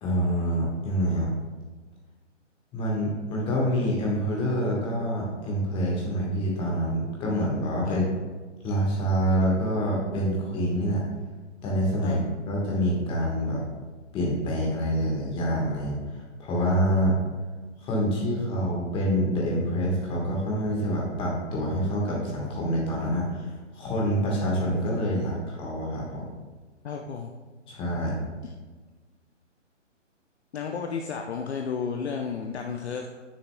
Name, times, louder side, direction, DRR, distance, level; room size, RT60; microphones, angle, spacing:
voice 1, 0.0-1.3 2.7-8.0 8.6-11.1 11.6-12.2 12.5-13.6 14.1-16.0 16.4-17.1 17.8-23.5 23.7-26.2 27.7-28.3, equal, 15° left, -3 dB, 1.4 m, -26 dB
voice 2, 26.8-27.3 30.5-33.1, left 6 dB, 60° left, 2 dB, 0.7 m, -32 dB
8.9 x 6.8 x 2.2 m, 1.3 s
figure-of-eight pair, 135°, 37 cm